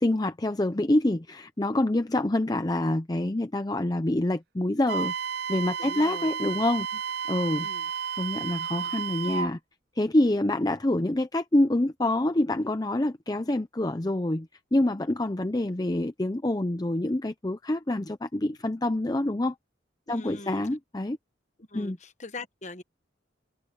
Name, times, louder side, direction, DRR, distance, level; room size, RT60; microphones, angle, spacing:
voice 1, 0.0-5.1 5.5-6.9 7.3-7.7 8.2-9.6 10.0-19.6 20.1-21.2 21.7-22.0, left 1 dB, 20° left, 0.6 m, -26 dB
Wind instrument woodwind instrument, 4.9-9.5, right 7 dB, 55° right, 0.4 m, -32 dB
voice 2, 5.8-6.3 7.6-7.9 20.1-20.6 21.7-22.8, left 3 dB, 40° left, 1.1 m, -41 dB
head